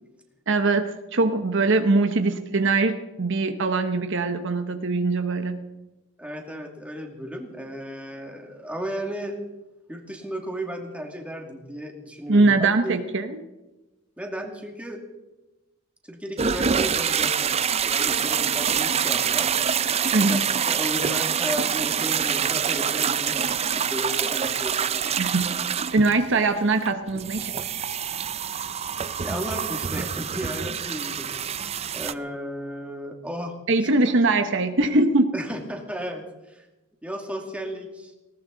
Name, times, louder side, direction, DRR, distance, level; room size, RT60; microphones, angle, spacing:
voice 1, 0.5-5.6 12.3-13.3 20.1-20.4 25.2-25.5 25.9-27.5 33.7-35.3, right 3 dB, 60° right, 7 dB, 1.0 m, -22 dB
voice 2, 6.2-9.4 9.9-12.5 12.8-13.0 14.2-15.0 16.0-17.5 17.9-19.5 20.1-20.4 20.6-25.2 29.2-31.3 31.9-33.5 35.3-36.7 37.0-38.1, equal, 5° right, 1 dB, 2.4 m, -34 dB
sound 1, 16.4-32.1, right 7 dB, 30° right, 0.5 m, -26 dB
19.5 x 18.0 x 4.0 m, 1.1 s
head